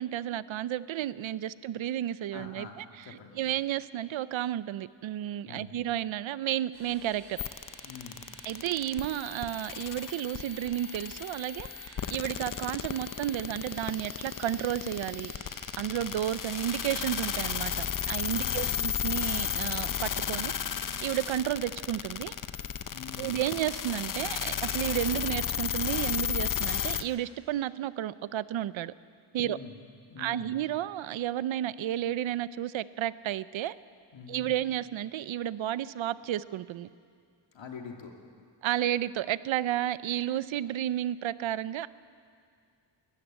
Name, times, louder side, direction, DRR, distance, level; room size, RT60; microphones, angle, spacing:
voice 1, 0.0-2.8 3.4-7.4 8.4-15.3 15.8-22.3 23.2-28.9 29.3-29.6 30.2-33.8 34.3-36.9 38.6-41.9, right 12 dB, 85° right, 17 dB, 0.6 m, -32 dB
voice 2, 2.3-3.4 5.4-5.8 7.8-8.3 18.3-18.9 22.9-23.4 29.4-29.8 30.1-30.6 34.1-34.5 37.5-38.1, left 5 dB, 75° left, 2 dB, 2.7 m, -45 dB
sound 1, 6.7-17.4, right 1 dB, 30° right, 5.4 m, -50 dB
sound 2, 7.4-27.0, left 8 dB, 45° left, 0.8 m, -34 dB
sound 3, 13.7-20.0, equal, 5° right, 6.9 m, -55 dB
21.5 x 13.5 x 9.0 m, 2.3 s
cardioid pair, 95°, 45 cm